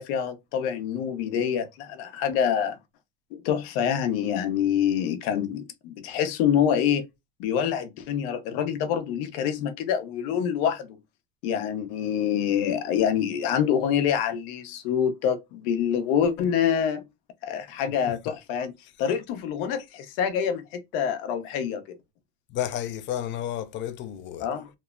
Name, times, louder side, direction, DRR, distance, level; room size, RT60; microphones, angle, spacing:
voice 1, 0.0-2.8 3.3-7.0 7.4-11.0 11.4-17.0 17.4-18.7 19.0-21.8 24.4-24.7, left 8 dB, 70° left, 0.7 m, -26 dB
voice 2, 22.5-24.5, left 11 dB, 40° left, 0.5 m, -32 dB
2.9 x 2.0 x 2.3 m
supercardioid pair, 115°, 31 cm